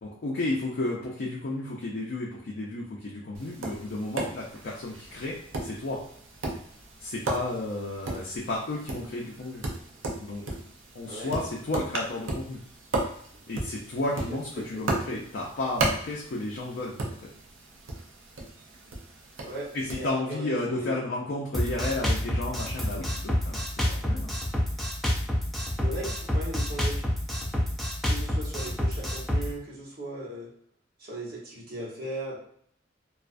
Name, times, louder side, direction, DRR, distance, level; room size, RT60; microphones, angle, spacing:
voice 1, 0.0-6.0 7.0-9.6 10.2-10.4 10.9-12.6 13.5-17.3 19.7-24.3, left 2 dB, 55° left, -4 dB, 0.4 m, -33 dB
Tap, 3.3-20.1, right 2 dB, 80° right, 0.5 m, -35 dB
voice 2, 14.3-14.8 19.4-21.0 25.8-27.0 28.0-30.5 31.0-32.4, right 1 dB, 55° right, -6 dB, 1.0 m, -38 dB
Drum kit, 21.5-29.5, equal, ahead, 0.4 m, -28 dB
2.4 x 2.2 x 2.4 m, 0.62 s
head